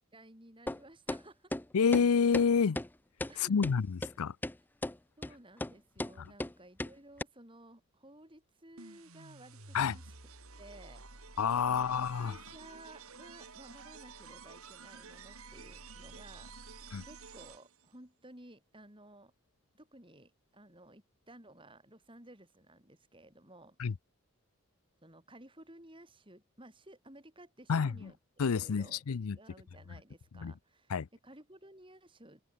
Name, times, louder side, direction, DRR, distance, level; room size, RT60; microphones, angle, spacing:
voice 1, 0.1-1.5 3.3-3.5 5.2-10.0 10.6-11.4 11.7-19.3 19.7-23.8 25.0-29.0 29.3-30.9 31.2-32.4, right 1 dB, 20° right, 4.7 m, -56 dB
sound 1, 0.7-0.8 1.1-1.2 1.5-1.6 1.9-2.1 2.3-2.5 2.8-2.9 3.2-3.3 3.6-3.7 4.0-4.1 4.4-4.6 4.8-5.0 5.2-5.3 5.6-5.7 6.0-6.1 6.4-6.5 6.8-6.9 7.2-7.3, left 1 dB, 10° left, 0.4 m, -35 dB
voice 2, 1.7-2.8 3.4-4.4 6.2-6.3 9.7-10.0 11.4-12.4 16.9-17.0 23.8-23.9 27.7-28.1 28.4-29.4 30.3-30.5 30.9-31.1, left 6 dB, 80° left, 0.5 m, -29 dB
sound 2, 8.8-17.9, right 4 dB, 75° right, 5.6 m, -51 dB
head